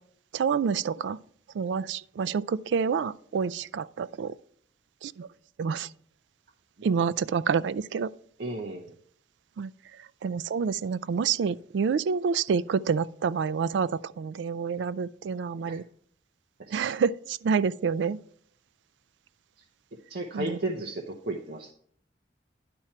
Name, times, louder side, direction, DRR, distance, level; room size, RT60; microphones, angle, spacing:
voice 1, 0.3-1.2 1.5-4.3 5.0-5.3 5.6-5.9 6.8-8.1 9.6-9.7 10.2-15.8 16.7-18.2 20.3-20.6, right 6 dB, 85° right, 0.3 m, -28 dB
voice 2, 8.4-8.9 15.7-15.8 16.6-16.8 20.1-21.7, right 2 dB, 65° right, 0.8 m, -34 dB
10.5 x 4.3 x 5.9 m
head